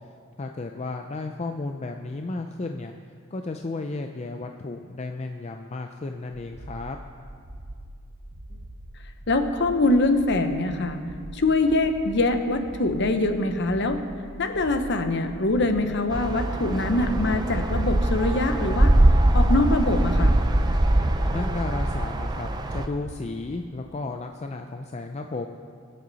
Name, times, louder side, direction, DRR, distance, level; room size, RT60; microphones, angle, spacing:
voice 1, 0.4-2.9 3.3-7.0 21.3-25.5, left 3 dB, 30° left, 4 dB, 0.4 m, -33 dB
sound 1, 6.3-22.2, right 1 dB, 60° right, 0.9 m, -43 dB
voice 2, 9.3-11.0 11.3-14.0 14.4-18.9 19.3-20.4, left 2 dB, 50° left, 7 dB, 0.8 m, -23 dB
sound 2, 16.1-22.9, right 1 dB, 20° right, 0.5 m, -22 dB
22.5 x 7.6 x 4.0 m, 2.2 s
head